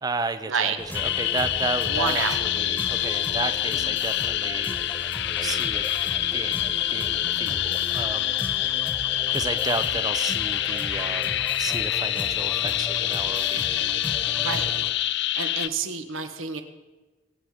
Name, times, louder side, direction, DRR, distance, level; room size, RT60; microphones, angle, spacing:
voice 1, 0.0-4.8 5.4-5.8 6.3-8.3 9.3-13.8, right 3 dB, 20° right, 10 dB, 0.5 m, -33 dB
sound 1, 0.8-14.9, left 1 dB, 10° left, 1.3 m, -37 dB
sound 2, 0.9-15.7, left 13 dB, 55° left, 0.4 m, -26 dB
voice 2, 1.8-2.5 14.4-14.7 15.3-16.6, right 5 dB, 85° right, 7 dB, 1.3 m, -28 dB
22.5 x 8.0 x 5.0 m, 1.2 s
head